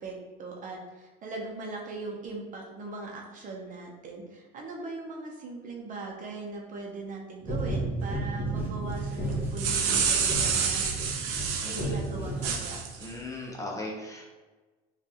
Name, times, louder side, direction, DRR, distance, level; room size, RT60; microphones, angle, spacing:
voice 1, 0.0-11.2 11.6-12.8, right 3 dB, 45° right, 0 dB, 0.9 m, -40 dB
sound 1, 7.4-13.0, right 2 dB, 10° right, 1.2 m, -33 dB
sound 2, 9.3-11.9 12.4-13.1, right 6 dB, 75° right, 0.7 m, -28 dB
voice 2, 11.6-12.2 13.0-14.2, left 2 dB, 15° left, -2 dB, 0.9 m, -38 dB
5.2 x 2.6 x 2.9 m, 1.3 s
supercardioid pair, 100°, 19 cm